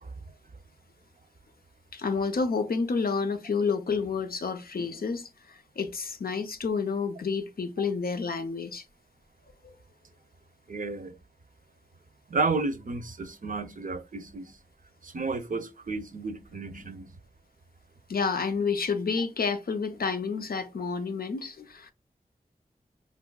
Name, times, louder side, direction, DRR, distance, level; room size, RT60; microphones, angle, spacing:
voice 1, 1.9-8.9 18.1-21.9, left 5 dB, 75° left, 0.5 m, -29 dB
voice 2, 10.7-11.1 12.3-14.5 15.0-17.1, right 3 dB, 60° right, 0.6 m, -32 dB
5.2 x 2.4 x 2.2 m
wide cardioid pair, 45°, 16 cm